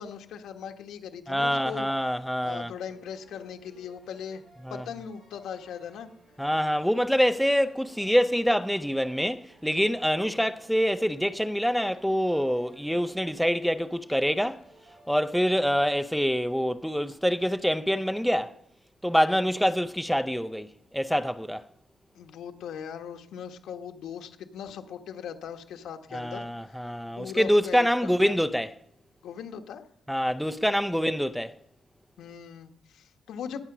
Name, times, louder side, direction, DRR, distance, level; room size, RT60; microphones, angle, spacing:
voice 1, 0.0-1.9 2.4-4.4 4.7-6.1 19.1-19.4 22.1-26.4 27.2-28.4 29.2-29.8 32.2-33.6, left 7 dB, 90° left, 1.4 m, -39 dB
voice 2, 1.3-2.7 4.6-4.8 6.4-14.6 15.1-18.5 19.0-20.7 20.9-21.6 26.1-28.7 30.1-31.5, equal, ahead, 0.6 m, -25 dB
sound 1, 2.5-16.8, right 2 dB, 40° right, 7.2 m, -58 dB
20.0 x 8.8 x 6.1 m
cardioid pair, 155°, 0 cm